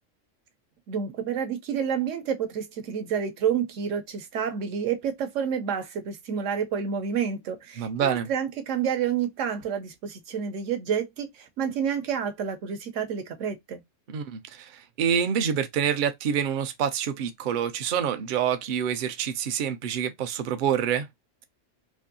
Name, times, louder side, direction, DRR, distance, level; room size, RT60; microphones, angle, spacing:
voice 1, 0.9-13.8, right 7 dB, 75° right, 1.1 m, -29 dB
voice 2, 7.8-8.3 14.1-21.1, right 8 dB, 60° right, 0.5 m, -27 dB
3.3 x 2.6 x 2.6 m
omnidirectional pair, 1.3 m